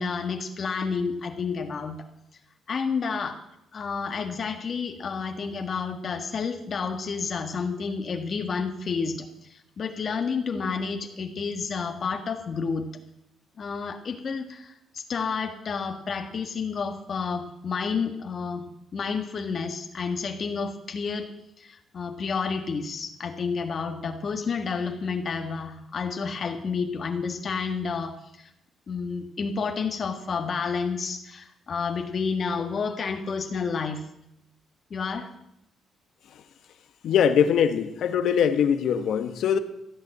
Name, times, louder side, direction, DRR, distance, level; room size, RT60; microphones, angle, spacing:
voice 1, 0.0-2.0 2.7-3.4 3.7-12.9 13.6-21.3 21.6-28.5 28.9-34.1 34.9-35.3, left 5 dB, 50° left, 1.5 m, -30 dB
voice 2, 37.0-39.6, left 8 dB, 70° left, 1.1 m, -22 dB
14.5 x 8.2 x 7.7 m
cardioid pair, 90°, 0 cm